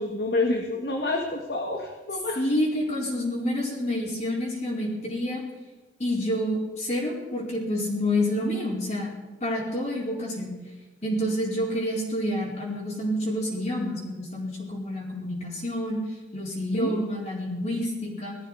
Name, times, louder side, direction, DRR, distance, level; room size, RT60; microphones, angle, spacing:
voice 1, 0.0-2.4 16.7-17.0, left 2 dB, 65° left, 2 dB, 1.6 m, -28 dB
voice 2, 2.4-5.4 6.0-9.1 9.4-10.5 11.0-16.0 16.3-18.4, left 1 dB, 40° left, -4 dB, 4.4 m, -28 dB
18.5 x 14.0 x 4.9 m, 1.2 s
head